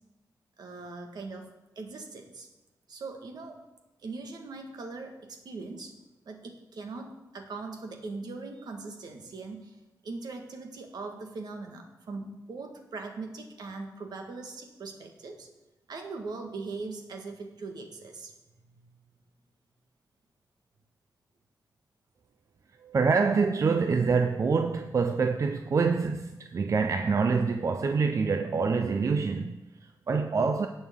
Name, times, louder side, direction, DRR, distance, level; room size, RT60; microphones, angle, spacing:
voice 1, 0.6-2.5 2.9-3.6 4.0-6.0 6.2-9.7 10.0-15.5 15.9-18.9, right 3 dB, 75° right, 1.6 m, -40 dB
voice 2, 22.8-30.7, right 5 dB, 50° right, 0.5 m, -26 dB
17.5 x 6.3 x 3.7 m
wide cardioid pair, 110°, 7 cm